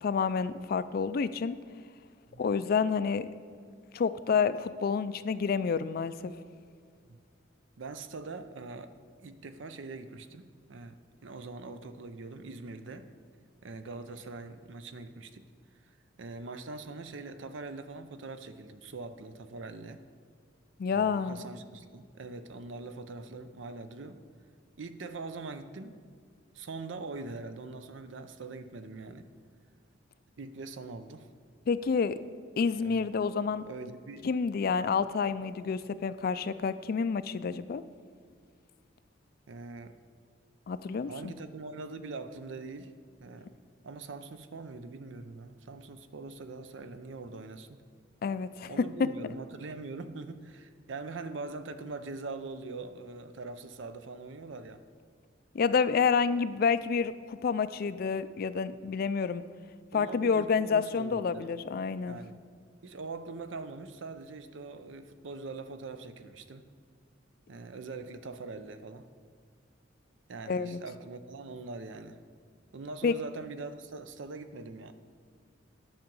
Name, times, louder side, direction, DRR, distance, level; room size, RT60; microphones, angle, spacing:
voice 1, 0.0-1.6 2.4-3.3 3.9-6.3 20.8-21.4 31.7-32.2 32.6-33.7 34.2-37.8 40.7-41.3 48.2-48.7 55.5-59.4 59.9-62.2 70.5-70.8 73.0-73.1, left 5 dB, 50° left, 14 dB, 0.3 m, -29 dB
voice 2, 7.8-8.9 9.2-13.1 13.6-15.5 16.2-20.0 20.9-24.2 24.8-26.0 26.5-29.3 30.4-31.3 32.8-33.1 33.6-34.3 39.5-40.0 41.1-42.9 43.2-43.5 43.8-47.8 48.7-54.8 59.9-61.4 62.1-62.4 62.8-66.7 67.5-69.1 70.3-72.2 72.7-74.9, right 3 dB, 75° right, 10 dB, 0.6 m, -42 dB
10.5 x 5.9 x 5.3 m, 2.1 s
head